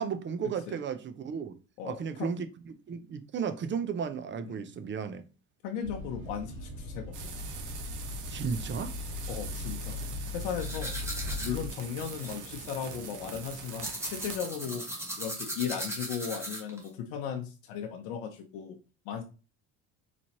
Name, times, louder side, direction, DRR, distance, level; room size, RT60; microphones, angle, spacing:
voice 1, 0.0-1.5 1.8-2.5 2.9-5.2 8.3-8.9, right 6 dB, 30° right, 0.6 m, -34 dB
voice 2, 1.8-2.3 4.4-4.7 5.6-7.3 9.3-10.0 10.3-11.0 11.4-14.8 15.2-18.8 19.1-19.2, left 8 dB, 85° left, 0.8 m, -36 dB
sound 1, 5.8-11.7, left 3 dB, 75° right, 1.7 m, -38 dB
sound 2, 7.1-14.4, right 6 dB, 55° right, 1.0 m, -43 dB
sound 3, 10.6-16.9, right 1 dB, 5° right, 1.4 m, -39 dB
4.1 x 3.1 x 2.8 m
supercardioid pair, 100°, 37 cm